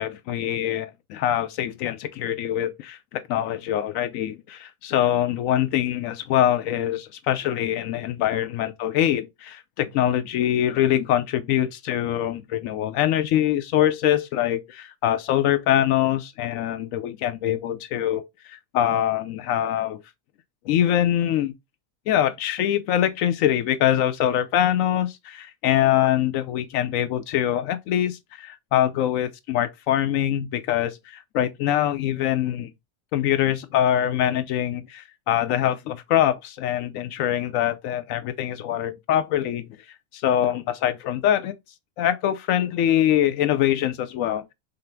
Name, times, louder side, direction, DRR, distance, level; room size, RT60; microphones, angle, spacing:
voice 1, 0.0-18.2 18.5-20.0 20.6-21.5 22.1-28.4 28.7-32.7 33.1-39.7 40.1-41.5 42.0-44.5, left 11 dB, 75° left, 1.0 m, -23 dB
5.7 x 2.0 x 3.4 m
omnidirectional pair, 1.4 m